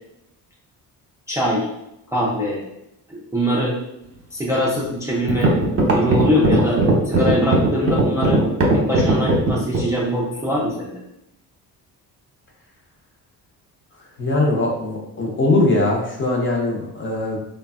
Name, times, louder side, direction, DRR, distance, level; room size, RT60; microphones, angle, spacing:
voice 1, 1.3-1.7 2.1-2.6 3.1-3.8 4.3-5.5 5.9-8.4 8.7-11.0, equal, 10° right, -4 dB, 0.5 m, -22 dB
sound 1, 4.8-4.9 5.3-9.9, right 2 dB, 35° right, 0.9 m, -17 dB
voice 2, 14.2-17.4, left 2 dB, 30° left, -1 dB, 0.8 m, -21 dB
3.2 x 2.2 x 2.3 m, 0.84 s
cardioid pair, 80°, 38 cm